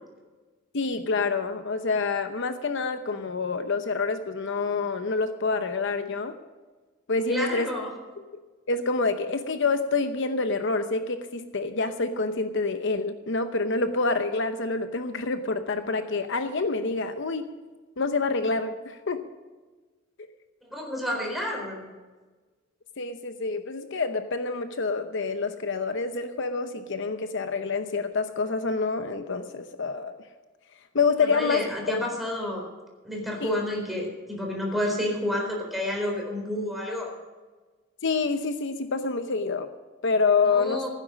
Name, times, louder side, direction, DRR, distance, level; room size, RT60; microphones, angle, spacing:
voice 1, 0.7-6.3 7.1-7.7 8.7-17.5 18.0-19.2 20.2-20.3 23.0-30.2 30.9-31.6 33.4-33.5 38.0-39.7 40.0-40.8, left 4 dB, 65° left, 9 dB, 0.8 m, -27 dB
voice 2, 7.3-7.9 20.7-21.9 31.2-32.6 33.0-37.2 40.4-40.9, left 1 dB, ahead, 0 dB, 4.1 m, -30 dB
16.0 x 9.9 x 6.2 m, 1.3 s
head